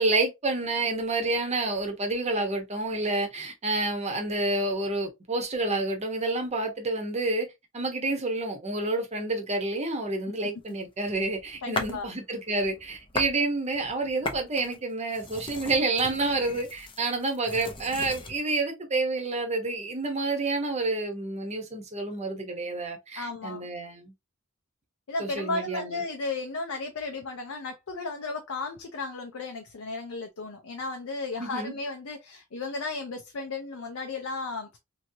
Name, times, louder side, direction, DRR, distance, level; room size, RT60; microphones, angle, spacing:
voice 1, 0.0-7.5 7.7-24.1 25.2-26.0 31.4-31.7, right 2 dB, 30° right, 0.9 m, -29 dB
sound 1, 10.7-12.1 12.5-13.4 13.7-18.4, left 2 dB, 25° left, 0.6 m, -37 dB
voice 2, 11.6-12.1 23.2-23.7 25.1-34.8, left 3 dB, 90° left, 0.6 m, -34 dB
3.0 x 2.8 x 2.7 m
head